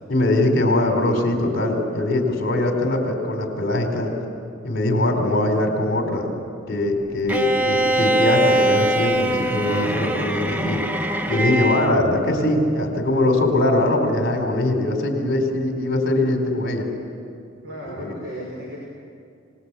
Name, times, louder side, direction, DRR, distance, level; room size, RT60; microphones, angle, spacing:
voice 1, 0.1-4.1 4.6-6.3 6.7-10.8 11.3-16.9 17.9-18.1, left 1 dB, 45° left, 3 dB, 4.3 m, -21 dB
Bowed string instrument, 7.3-12.0, right 1 dB, 10° right, 0.7 m, -22 dB
voice 2, 7.6-8.0 17.6-18.8, equal, 55° right, -4 dB, 5.4 m, -35 dB
27.0 x 19.5 x 8.4 m, 2.3 s
head